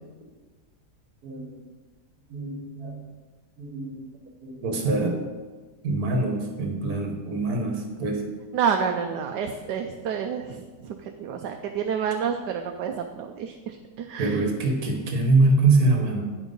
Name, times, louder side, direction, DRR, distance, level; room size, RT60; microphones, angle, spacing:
voice 1, 1.2-1.6 2.3-3.0 3.6-4.1 4.4-5.2 5.8-8.2 14.2-16.2, right 3 dB, 60° right, 3 dB, 1.8 m, -24 dB
voice 2, 8.5-14.4, right 7 dB, 80° right, 4 dB, 1.2 m, -29 dB
9.6 x 6.0 x 5.4 m, 1.3 s
omnidirectional pair, 1.9 m